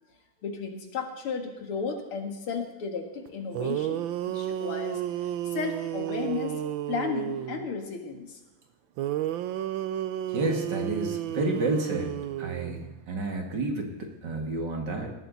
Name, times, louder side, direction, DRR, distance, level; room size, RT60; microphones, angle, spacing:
voice 1, 0.4-6.6 6.9-8.4, left 5 dB, 85° left, 4 dB, 2.8 m, -34 dB
sound 1, 3.3-3.4 3.5-7.7 9.0-13.0, right 12 dB, 70° right, 1.3 m, -32 dB
voice 2, 10.3-12.1 12.4-15.1, right 2 dB, 55° right, 2 dB, 2.6 m, -30 dB
18.5 x 13.5 x 4.1 m, 1.1 s
omnidirectional pair, 2.4 m